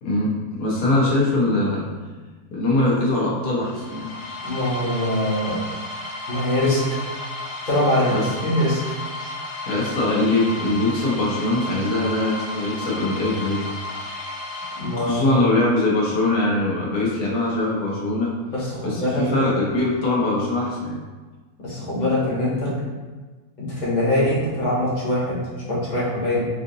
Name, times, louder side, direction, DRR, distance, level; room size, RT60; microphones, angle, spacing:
voice 1, 0.0-1.8 2.5-4.1 8.1-8.3 9.2-9.3 9.7-13.7 15.0-18.3 18.8-21.0, left 2 dB, 90° left, -5 dB, 1.4 m, -22 dB
sound 1, 3.6-15.5, left 2 dB, 60° left, 0.9 m, -33 dB
voice 2, 4.4-5.6 6.3-7.0 7.7-8.8 14.8-15.4 18.5-19.4 21.6-22.7 23.6-25.4 25.7-26.5, left 1 dB, 30° left, -8 dB, 1.1 m, -23 dB
4.9 x 2.6 x 2.6 m, 1.3 s
omnidirectional pair, 1.6 m